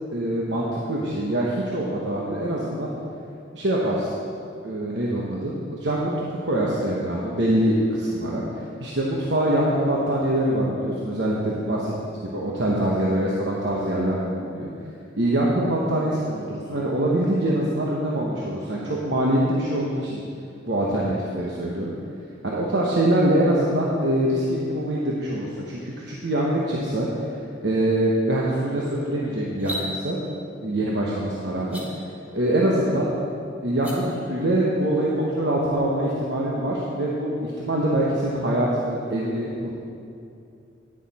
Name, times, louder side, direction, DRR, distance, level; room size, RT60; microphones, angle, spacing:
voice 1, 0.1-2.9 3.5-4.1 4.6-11.8 12.2-14.7 15.2-20.2 20.7-21.9 22.4-27.1 27.6-30.2 30.6-31.8 32.3-33.1 33.6-39.7, right 1 dB, 65° right, -4 dB, 1.1 m, -24 dB
sound 1, 29.5-29.9 31.6-31.8 33.7-34.0, equal, 10° right, 1.6 m, -32 dB
10.0 x 9.9 x 4.3 m, 2.5 s
head